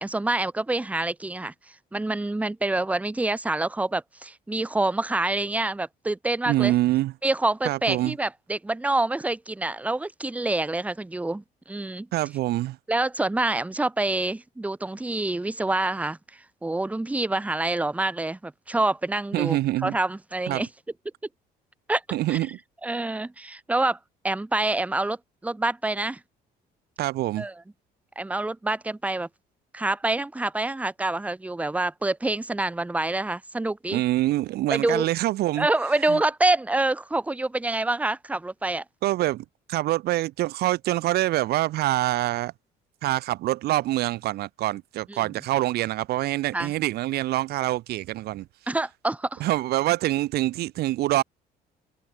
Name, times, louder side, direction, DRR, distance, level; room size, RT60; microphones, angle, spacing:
voice 1, 0.0-1.5 1.9-6.7 7.2-12.1 12.9-16.2 16.6-20.7 21.9-22.0 22.3-22.4 22.8-24.0 24.2-25.2 25.4-26.2 27.4-27.5 28.2-29.3 29.7-34.0 34.7-35.1 35.6-38.8 45.1-45.2 46.5-46.7 48.7-49.4, right 2 dB, 10° right, 0.9 m, -26 dB
voice 2, 6.5-7.1 7.6-8.1 12.1-12.8 19.3-20.0 20.5-20.6 22.1-22.6 27.0-27.5 33.9-35.7 36.1-36.2 39.0-42.5 43.0-48.5 49.4-51.2, right 16 dB, 70° right, 0.7 m, -25 dB
cardioid pair, 110°, 17 cm